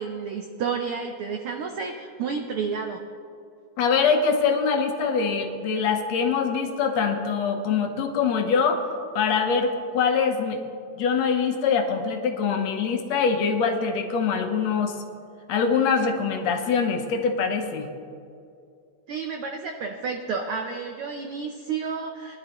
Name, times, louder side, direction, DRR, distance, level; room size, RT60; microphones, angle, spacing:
voice 1, 0.0-3.0 19.1-22.4, right 5 dB, 90° right, 4 dB, 1.1 m, -31 dB
voice 2, 3.8-8.9 9.2-10.6 11.0-15.0 15.5-17.9, left 5 dB, 70° left, 4 dB, 2.1 m, -23 dB
20.0 x 11.0 x 3.0 m, 2.4 s
omnidirectional pair, 3.3 m